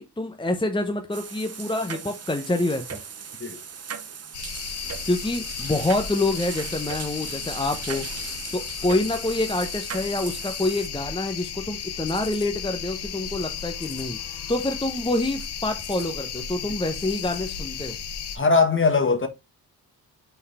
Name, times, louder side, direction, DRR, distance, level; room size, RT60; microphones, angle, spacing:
voice 1, 0.0-3.0 5.0-18.0, left 2 dB, 10° left, 0.9 m, -27 dB
sound 1, 1.1-10.9, right 6 dB, 40° right, 0.9 m, -38 dB
sound 2, 4.3-18.4, left 7 dB, 90° left, 1.0 m, -34 dB
voice 2, 18.3-19.3, left 4 dB, 30° left, 1.4 m, -20 dB
5.6 x 4.6 x 4.1 m
cardioid pair, 85°, 39 cm